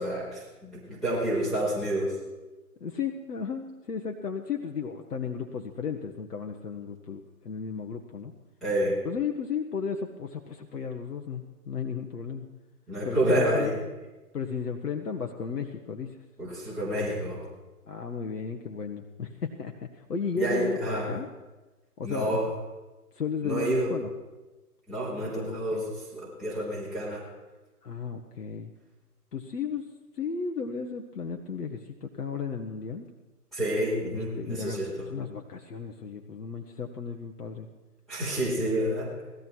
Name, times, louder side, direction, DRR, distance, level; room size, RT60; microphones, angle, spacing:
voice 1, 0.0-2.2 8.6-9.0 12.9-13.8 16.4-17.4 20.4-21.1 22.0-22.5 23.4-23.9 24.9-27.2 33.5-35.1 38.1-39.2, right 1 dB, ahead, -11 dB, 4.6 m, -29 dB
voice 2, 2.8-8.3 9.0-12.6 13.0-13.7 14.3-16.2 17.8-21.3 22.0-22.5 23.1-24.1 25.2-25.8 27.8-28.7 29.3-33.1 34.0-37.7, left 6 dB, 80° left, 3 dB, 1.5 m, -34 dB
18.5 x 14.5 x 4.6 m, 1.1 s
hypercardioid pair, 145°, 46 cm